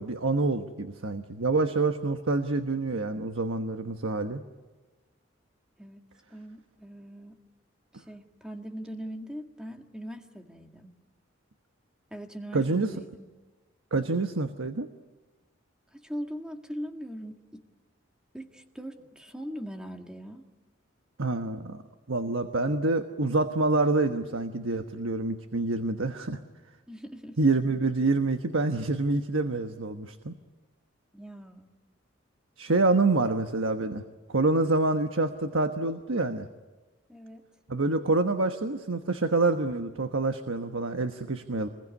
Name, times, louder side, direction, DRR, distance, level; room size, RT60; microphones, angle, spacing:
voice 1, 0.0-4.4 12.5-12.9 13.9-14.9 21.2-21.8 22.1-26.4 27.4-30.3 32.6-34.0 34.3-36.5 37.7-41.7, right 3 dB, 90° right, 7 dB, 1.2 m, -27 dB
voice 2, 6.3-7.4 7.9-10.9 12.1-13.3 15.9-17.6 18.3-20.5 26.9-27.4 31.1-31.7 37.1-37.4, equal, 5° right, 4 dB, 1.8 m, -41 dB
26.5 x 21.0 x 9.7 m, 1.2 s
head